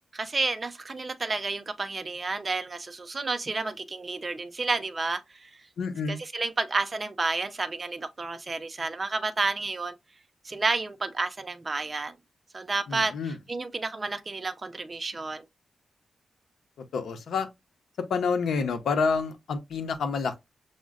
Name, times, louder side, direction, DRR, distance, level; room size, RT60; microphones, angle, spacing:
voice 1, 0.1-5.5 6.1-9.9 10.4-12.2 12.5-15.4, right 3 dB, 30° right, 0.5 m, -31 dB
voice 2, 5.8-6.2 12.9-13.4 16.9-17.5 18.1-20.4, left 5 dB, 90° left, 0.7 m, -28 dB
6.2 x 2.1 x 2.4 m
wide cardioid pair, 115°, 0 cm